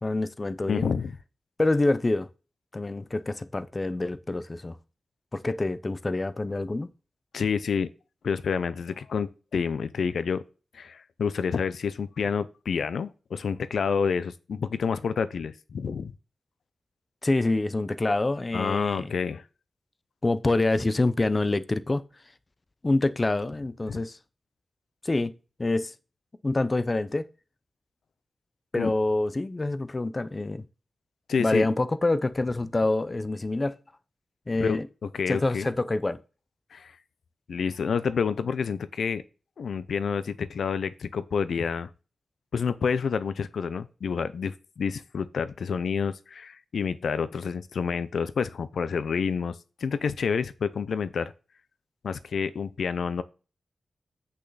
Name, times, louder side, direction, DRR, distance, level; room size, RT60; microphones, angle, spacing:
voice 1, 0.0-0.9 1.6-2.3 2.7-4.8 5.3-6.9 17.2-19.1 20.2-22.0 22.8-24.2 25.0-25.3 25.6-25.9 26.4-27.3 28.7-30.6 31.4-33.8 34.5-34.9 35.3-36.2, left 2 dB, 25° left, 0.6 m, -26 dB
voice 2, 0.7-1.1 7.3-7.9 8.2-10.4 10.7-16.1 18.5-19.4 23.9-24.0 28.8-28.9 31.3-31.7 34.5-35.7 36.7-36.9 37.5-39.2 39.6-41.9 42.5-51.3 52.0-53.2, left 6 dB, 80° left, 0.6 m, -28 dB
8.2 x 6.3 x 4.0 m
wide cardioid pair, 135°, 0 cm